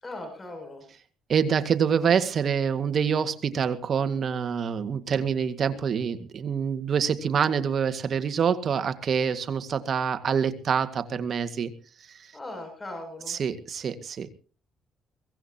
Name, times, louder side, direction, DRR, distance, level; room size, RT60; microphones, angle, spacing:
voice 1, 0.0-0.9 12.3-13.4, left 2 dB, 25° left, 3 dB, 7.3 m, -39 dB
voice 2, 1.3-11.7 12.1-12.3 13.3-14.3, right 7 dB, 55° right, 10 dB, 1.8 m, -26 dB
23.0 x 16.0 x 2.9 m, 0.39 s
cardioid pair, 90°, 0 cm